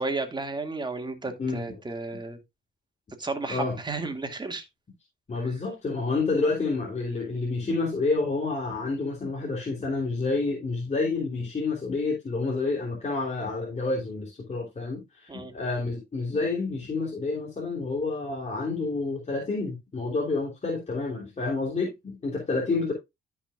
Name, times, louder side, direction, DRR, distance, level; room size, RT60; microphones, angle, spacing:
voice 1, 0.0-2.4 3.2-4.7 5.4-5.5 15.3-15.5, right 3 dB, 20° right, 2.3 m, -33 dB
voice 2, 5.3-22.9, left 3 dB, 35° left, 3.3 m, -29 dB
13.5 x 5.8 x 2.5 m
cardioid pair, 90°, 20 cm